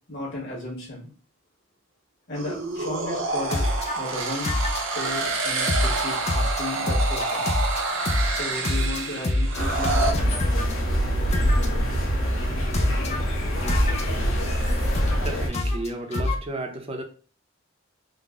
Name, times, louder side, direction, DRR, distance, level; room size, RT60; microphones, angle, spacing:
voice 1, 0.1-1.1 2.3-3.6 3.9-4.6 4.9-7.5 8.3-10.3, left 1 dB, 55° left, -4 dB, 1.5 m, -34 dB
sound 1, 2.3-10.1, right 3 dB, 65° right, 0.7 m, -28 dB
sound 2, 3.5-4.0 4.4-5.1 5.7-10.7 11.3-11.9 12.7-13.2 13.7-15.3 15.5-16.4, left 1 dB, 30° left, 0.5 m, -26 dB
sound 3, 9.5-15.5, equal, 75° left, 1.3 m, -25 dB
voice 2, 15.1-17.0, right 1 dB, 30° right, 5 dB, 0.5 m, -33 dB
3.8 x 2.0 x 3.6 m, 0.39 s
head